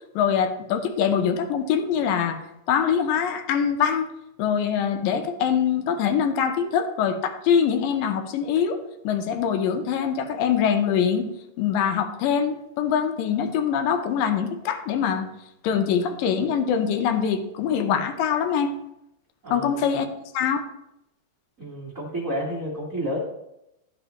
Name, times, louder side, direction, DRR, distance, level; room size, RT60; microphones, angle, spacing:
voice 1, 0.2-2.4 2.7-4.1 4.4-11.3 11.6-15.3 15.6-18.7 19.5-20.1 20.3-20.6, left 7 dB, 80° left, 7 dB, 2.4 m, -23 dB
voice 2, 19.4-19.8 21.6-23.2, equal, 45° right, -7 dB, 1.0 m, -30 dB
12.0 x 5.3 x 3.0 m, 0.84 s
omnidirectional pair, 3.9 m